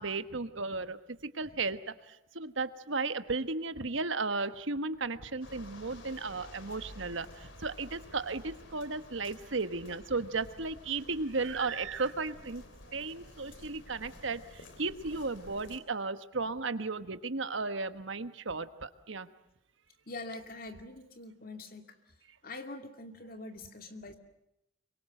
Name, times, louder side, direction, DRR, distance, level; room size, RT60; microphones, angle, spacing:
voice 1, 0.0-12.6 12.9-19.3, right 3 dB, 70° right, 11 dB, 1.3 m, -35 dB
sound 1, 5.4-15.8, left 1 dB, 70° left, 3.1 m, -51 dB
voice 2, 20.1-22.0 22.4-24.1, left 2 dB, 45° left, 6 dB, 2.4 m, -44 dB
25.5 x 23.5 x 7.8 m, 0.87 s
head